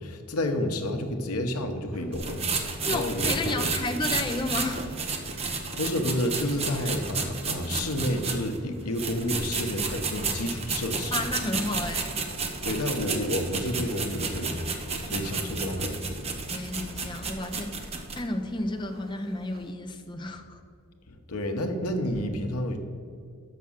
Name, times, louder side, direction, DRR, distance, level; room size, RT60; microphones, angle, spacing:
voice 1, 0.0-3.7 5.8-11.2 12.6-16.3 21.1-22.8, left 1 dB, 90° left, 6 dB, 0.9 m, -30 dB
sound 1, 1.9-19.7, right 1 dB, 65° right, 0.7 m, -49 dB
sound 2, 2.1-8.6 8.9-18.2, right 4 dB, 25° right, 0.6 m, -32 dB
voice 2, 2.8-4.9 6.7-6.9 11.1-12.2 15.1-15.9 16.5-17.9 18.1-20.6, left 2 dB, 20° left, 6 dB, 0.5 m, -32 dB
6.2 x 5.9 x 7.1 m, 2.3 s
head